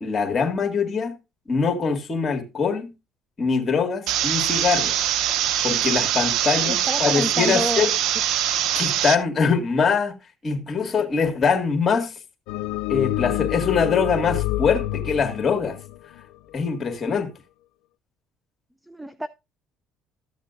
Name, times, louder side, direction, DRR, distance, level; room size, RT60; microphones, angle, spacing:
voice 1, 0.0-1.2 1.5-2.9 3.4-4.9 5.6-7.9 8.8-10.2 10.4-12.1 12.9-15.8 16.5-17.3, left 5 dB, 35° left, 2.0 m, -23 dB
sound 1, 4.1-9.1, right 11 dB, 70° right, 0.7 m, -23 dB
voice 2, 6.6-7.8 18.9-19.3, equal, 5° right, 0.5 m, -29 dB
sound 2, 12.5-16.9, left 15 dB, 80° left, 0.4 m, -28 dB
13.5 x 7.3 x 2.5 m
supercardioid pair, 80°, 0 cm